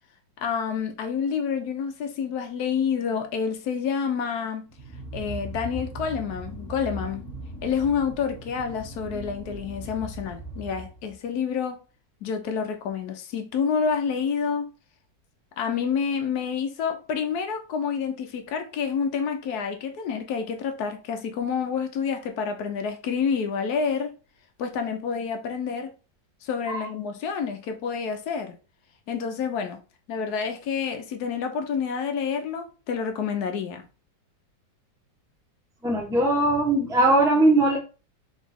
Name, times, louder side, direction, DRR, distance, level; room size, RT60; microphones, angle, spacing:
voice 1, 0.4-4.7 5.1-7.2 7.6-11.8 12.2-14.7 15.6-24.1 24.6-25.9 26.4-28.6 29.1-29.8 30.1-33.9, left 6 dB, 65° left, 1.1 m, -28 dB
sound 1, 4.7-11.2, right 2 dB, 25° right, 1.2 m, -39 dB
voice 2, 35.8-37.8, right 2 dB, 5° right, 0.8 m, -20 dB
4.0 x 3.2 x 3.6 m
omnidirectional pair, 2.0 m